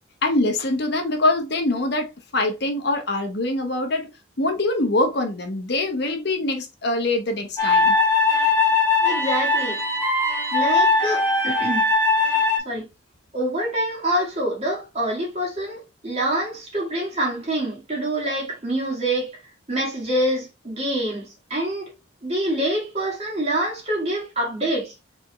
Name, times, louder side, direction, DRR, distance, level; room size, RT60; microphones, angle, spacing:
voice 1, 0.2-4.1 4.4-8.0, left 2 dB, 55° left, 0.9 m, -24 dB
sound 1, 7.6-12.6, left 3 dB, 15° left, 1.7 m, -20 dB
voice 2, 9.0-9.8 10.5-11.8 12.6-12.8 13.3-19.4 19.7-21.9 22.2-24.9, right 1 dB, 30° right, 1.9 m, -26 dB
4.5 x 3.5 x 3.0 m
head